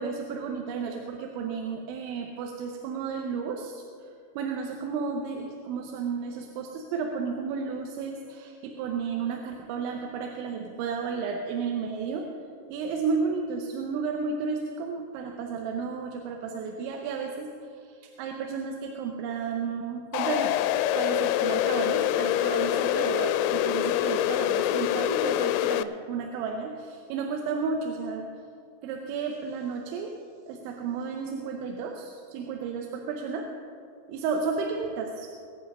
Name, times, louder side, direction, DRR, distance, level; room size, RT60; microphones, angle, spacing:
voice 1, 0.0-4.1 4.4-12.3 12.7-20.5 20.9-28.3 28.8-30.1 30.5-33.5 34.1-35.3, right 5 dB, 80° right, 2 dB, 3.2 m, -32 dB
sound 1, 20.1-25.8, left 12 dB, 85° left, 2.6 m, -25 dB
22.0 x 8.5 x 5.3 m, 2.3 s
omnidirectional pair, 5.5 m